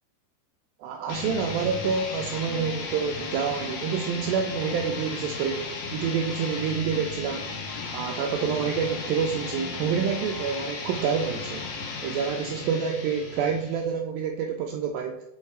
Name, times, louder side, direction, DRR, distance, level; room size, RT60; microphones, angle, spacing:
voice 1, 0.8-7.5 7.9-11.7 12.0-15.2, right 6 dB, 85° right, 3 dB, 2.1 m, -28 dB
sound 1, 1.1-13.9, left 4 dB, 90° left, 3.2 m, -35 dB
7.4 x 3.5 x 4.2 m, 0.84 s
omnidirectional pair, 4.6 m